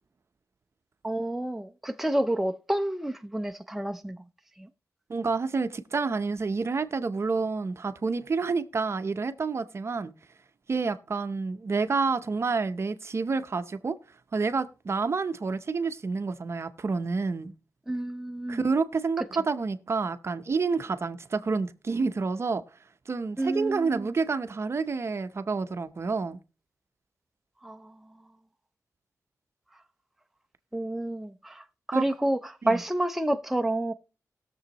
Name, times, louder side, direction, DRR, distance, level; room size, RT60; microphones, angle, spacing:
voice 1, 1.0-4.2 17.9-18.6 23.4-24.1 27.6-27.8 30.7-33.9, right 1 dB, 5° right, 0.5 m, -29 dB
voice 2, 5.1-10.1 10.7-14.0 14.3-17.5 18.5-22.6 23.1-26.4 31.9-32.1 32.6-32.8, right 4 dB, 45° right, 0.7 m, -29 dB
20.0 x 6.9 x 2.9 m
wide cardioid pair, 120°, 6 cm